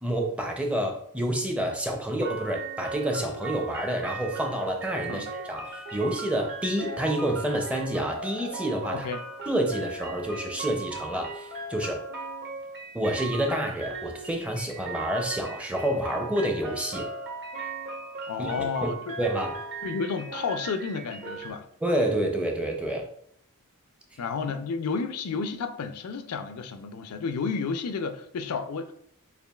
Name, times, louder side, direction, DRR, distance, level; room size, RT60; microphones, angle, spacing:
voice 1, 0.0-9.1 9.5-12.0 12.9-17.1 18.4-18.5 18.8-18.9 19.2-19.5 21.8-23.0, right 1 dB, 5° right, 0.5 m, -28 dB
sound 1, 2.2-21.5, right 3 dB, 50° right, 0.9 m, -38 dB
voice 2, 18.3-19.1 19.8-21.7 24.2-28.9, left 5 dB, 80° left, 0.4 m, -31 dB
6.7 x 2.4 x 2.3 m
head